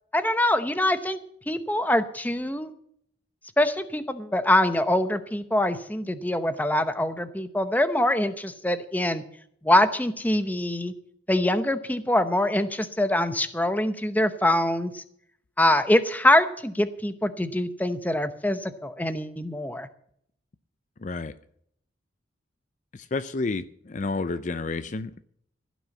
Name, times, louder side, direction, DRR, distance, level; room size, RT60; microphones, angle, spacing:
voice 1, 0.1-1.2 1.5-2.7 3.6-9.2 9.6-10.9 11.3-15.0 15.6-19.9, left 1 dB, 10° left, 11 dB, 0.8 m, -24 dB
voice 2, 21.0-21.3 23.1-25.2, left 3 dB, 40° left, 13 dB, 0.5 m, -30 dB
16.0 x 6.2 x 8.2 m, 0.67 s
head